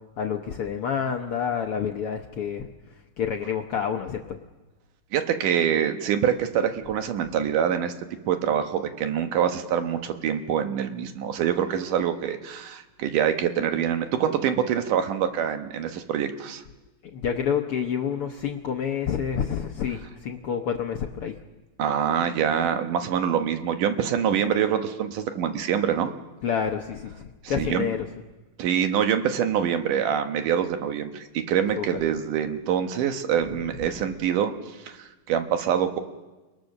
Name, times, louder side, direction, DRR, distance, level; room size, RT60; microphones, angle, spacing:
voice 1, 0.2-2.7 3.2-4.2 17.1-21.3 26.4-28.0 31.8-32.0, left 7 dB, 65° left, 3 dB, 1.4 m, -28 dB
voice 2, 5.1-7.9 8.2-16.6 21.8-26.1 27.4-27.9 28.6-36.0, right 8 dB, 75° right, 7 dB, 2.8 m, -25 dB
29.5 x 19.0 x 6.6 m, 1.2 s
omnidirectional pair, 3.7 m